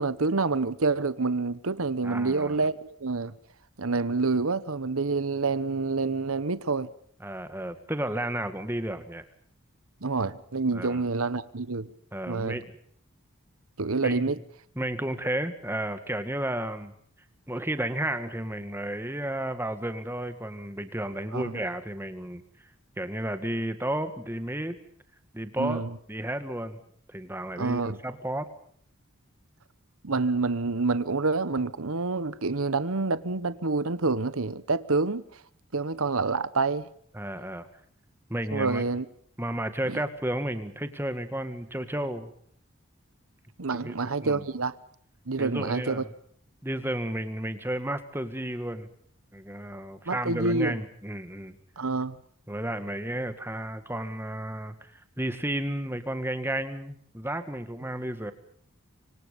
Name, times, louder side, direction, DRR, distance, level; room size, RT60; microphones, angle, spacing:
voice 1, 0.0-3.3 3.8-6.9 10.0-11.9 12.3-12.6 13.8-14.4 21.3-21.5 25.6-25.9 27.6-28.0 30.0-35.2 35.7-36.9 38.5-39.0 39.9-40.0 43.6-44.7 45.3-46.0 50.1-50.7 51.8-52.2, right 3 dB, 80° right, 1.1 m, -27 dB
voice 2, 2.0-2.6 7.2-9.2 10.7-11.0 12.1-12.7 14.0-14.3 14.8-16.9 17.5-22.4 23.0-24.8 25.3-26.8 27.1-28.5 37.1-37.7 38.3-38.8 39.4-42.3 43.7-43.9 44.2-44.4 45.4-46.1 46.6-48.9 49.3-51.6 52.5-58.3, right 1 dB, 10° right, 1.9 m, -32 dB
25.5 x 25.5 x 5.3 m
head